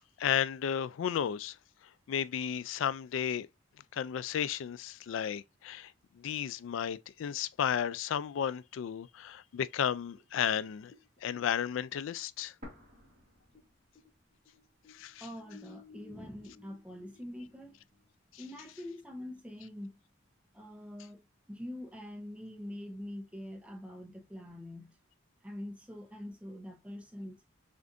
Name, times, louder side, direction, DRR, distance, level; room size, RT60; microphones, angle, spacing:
voice 1, 0.2-1.6 2.1-3.5 3.9-5.9 6.2-10.9 11.2-12.5 14.9-15.2, left 8 dB, 75° left, 0.3 m, -33 dB
sound 1, 10.2-13.7 13.9-18.1, left 6 dB, 30° left, 0.9 m, -59 dB
sound 2, 12.6-14.6 14.9-15.0 15.7-16.6, left 1 dB, 40° right, 1.7 m, -53 dB
voice 2, 15.2-17.8 18.4-20.0 20.5-25.0 25.4-27.4, left 1 dB, 5° right, 0.8 m, -44 dB
6.7 x 2.5 x 2.5 m
head